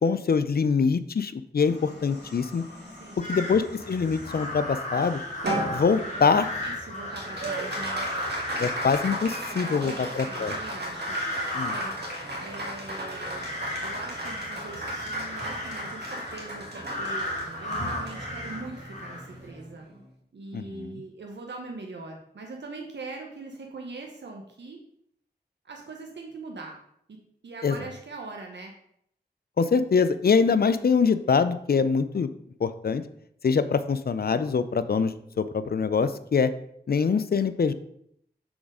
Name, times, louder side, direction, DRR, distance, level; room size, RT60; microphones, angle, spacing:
voice 1, 0.0-2.6 3.3-5.2 5.7-6.5 8.6-10.5 11.5-11.7 20.5-20.9 27.6-27.8 29.6-32.3 32.6-33.0 33.4-36.5 36.9-37.7, left 5 dB, 60° left, 13 dB, 0.4 m, -24 dB
sound 1, 1.6-6.7, left 1 dB, 75° left, 2.5 m, -47 dB
sound 2, 3.2-19.5, left 1 dB, 45° left, 1.9 m, -35 dB
Applause, 5.4-20.1, right 1 dB, 70° right, 1.3 m, -36 dB
voice 2, 5.9-6.4 6.6-8.0 9.5-11.2 11.7-12.0 12.4-13.5 13.8-19.9 20.3-24.8 25.6-26.8 27.1-27.2 27.4-28.7, right 3 dB, 90° right, 1 dB, 0.8 m, -41 dB
6.0 x 4.1 x 4.9 m, 0.71 s
wide cardioid pair, 55°, 18 cm